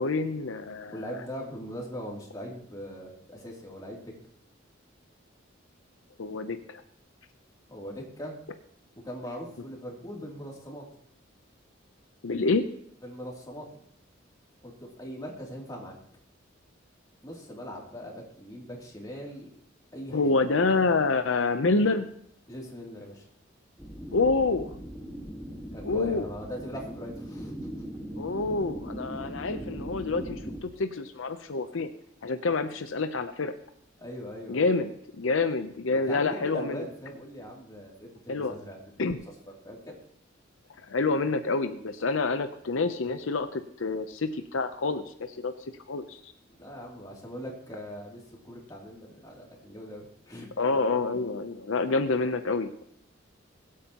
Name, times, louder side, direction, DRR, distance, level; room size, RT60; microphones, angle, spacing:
voice 1, 0.0-1.0 6.2-6.8 12.2-12.6 20.1-22.1 24.1-24.7 25.8-26.3 28.2-31.9 32.2-33.5 34.5-36.8 38.3-38.6 39.0-39.2 40.9-45.5 45.9-46.3 50.6-52.7, left 3 dB, 80° left, 9 dB, 0.7 m, -27 dB
voice 2, 0.9-4.1 7.7-8.4 9.0-10.9 13.0-13.7 14.6-16.0 17.2-19.5 19.9-20.2 22.5-23.2 25.7-27.9 34.0-34.7 36.1-38.8 39.1-39.2 39.6-40.0 46.6-50.5, equal, 20° left, -2 dB, 2.9 m, -40 dB
sound 1, 23.8-30.6, right 1 dB, 5° left, 1.6 m, -39 dB
22.0 x 8.4 x 3.0 m, 0.66 s
head